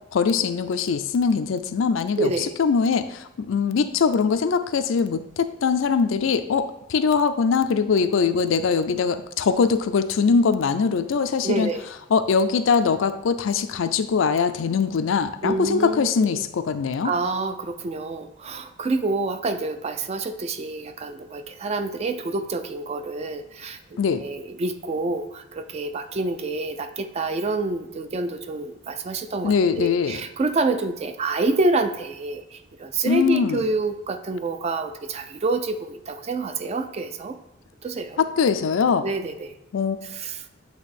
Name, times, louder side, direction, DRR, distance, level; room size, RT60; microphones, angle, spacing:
voice 1, 0.1-11.7 12.1-17.1 24.0-24.2 29.4-30.2 33.1-33.6 38.2-39.1 39.7-40.0, left 5 dB, 80° left, 10 dB, 0.4 m, -22 dB
voice 2, 2.2-2.5 11.4-11.9 15.4-16.4 17.0-37.4 37.8-38.2 39.0-39.5 40.0-40.4, right 3 dB, 30° right, 9 dB, 0.4 m, -27 dB
8.0 x 2.8 x 4.1 m, 0.91 s
head